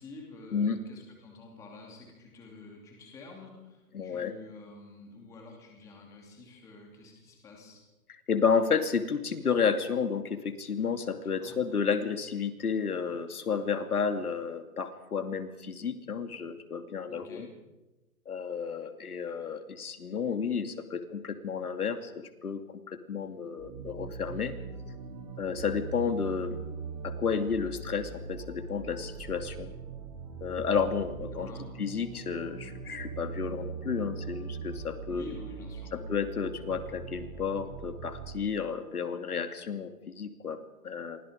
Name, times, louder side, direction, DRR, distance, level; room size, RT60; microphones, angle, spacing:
voice 1, 0.0-7.8 11.2-11.6 17.1-17.5 31.4-31.6 35.1-35.9, left 3 dB, 5° left, 0 dB, 2.8 m, -48 dB
voice 2, 3.9-4.3 8.3-17.5 18.3-22.6 22.9-24.5 25.4-26.6 27.0-29.7 30.4-31.5 31.8-35.2 35.9-41.2, left 6 dB, 65° left, 7 dB, 2.7 m, -31 dB
sound 1, 23.6-38.3, right 5 dB, 25° right, 2.8 m, -41 dB
29.5 x 24.0 x 5.2 m, 1.0 s
hypercardioid pair, 170°, 47 cm